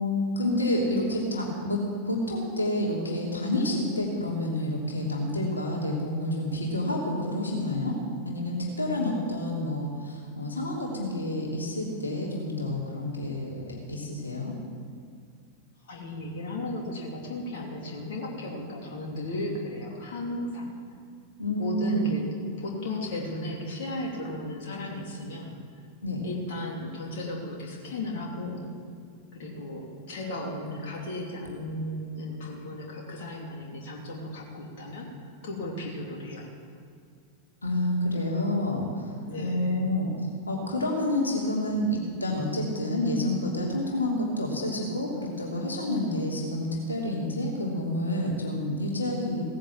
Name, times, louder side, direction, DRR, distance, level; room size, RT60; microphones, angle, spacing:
voice 1, 0.0-1.8 2.0-7.9 8.2-13.6 13.9-14.5 21.4-22.1 26.0-26.3 37.6-39.1 39.4-40.1 40.5-49.4, left 1 dB, 75° left, -2 dB, 3.0 m, -29 dB
voice 2, 15.8-20.7 21.6-22.3 22.6-25.6 26.2-28.7 29.3-35.1 35.4-36.5 39.3-39.8, left 1 dB, 55° left, -2 dB, 3.0 m, -35 dB
17.0 x 10.5 x 7.5 m, 2.2 s
figure-of-eight pair, 90°, 0 cm